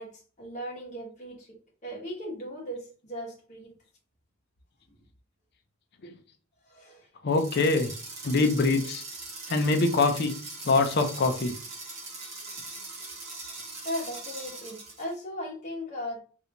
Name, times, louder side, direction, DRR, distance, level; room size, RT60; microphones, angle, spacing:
voice 1, 0.0-3.7 6.7-7.1 13.8-16.2, equal, 35° left, 1.0 m, -37 dB
voice 2, 7.2-7.9 8.2-9.0 9.5-10.4 10.6-11.5, left 3 dB, 50° left, 0.5 m, -24 dB
sound 1, 7.3-15.1, right 3 dB, 35° right, 1.2 m, -41 dB
3.2 x 2.6 x 2.9 m
head